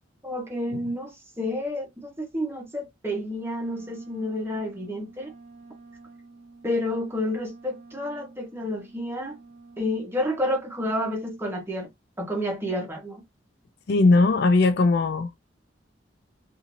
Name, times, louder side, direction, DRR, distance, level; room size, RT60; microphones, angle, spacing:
voice 1, 0.2-5.3 6.6-9.4 9.8-11.9 12.2-13.2, left 1 dB, 15° right, 1.0 m, -30 dB
Wind instrument woodwind instrument, 3.3-10.2, right 3 dB, 35° right, 1.1 m, -50 dB
voice 2, 13.9-15.4, left 3 dB, 60° left, 0.4 m, -19 dB
2.6 x 2.6 x 3.0 m
head